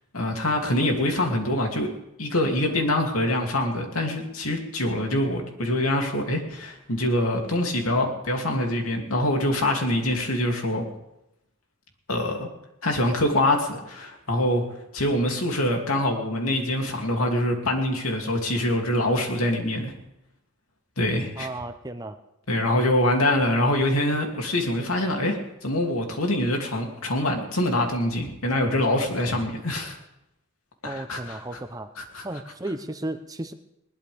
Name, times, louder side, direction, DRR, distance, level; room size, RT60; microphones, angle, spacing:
voice 1, 0.1-1.9 2.2-10.8 12.1-12.5 12.8-14.6 14.9-19.9 21.0-21.5 22.5-30.0 30.8-31.4 32.1-32.2, left 1 dB, 80° left, 2 dB, 2.9 m, -24 dB
voice 2, 21.4-22.2 30.8-31.9 32.2-33.5, right 1 dB, 15° right, 8 dB, 0.8 m, -34 dB
21.0 x 19.5 x 3.6 m, 0.86 s
head